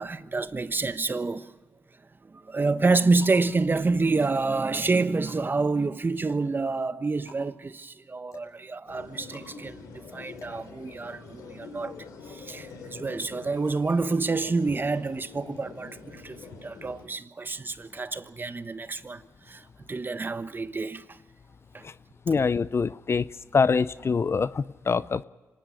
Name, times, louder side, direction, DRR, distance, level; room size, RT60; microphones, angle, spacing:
voice 1, 0.0-1.5 2.2-11.9 12.3-21.2 21.7-21.9, right 3 dB, 35° right, 1.1 m, -28 dB
sound 1, 1.6-1.9 2.6-11.4, left 2 dB, 65° left, 6.9 m, -52 dB
sound 2, 8.9-17.0, left 4 dB, 80° left, 3.5 m, -45 dB
voice 2, 22.3-25.2, left 5 dB, 45° left, 0.6 m, -25 dB
25.5 x 19.0 x 6.4 m
supercardioid pair, 45°, 6 cm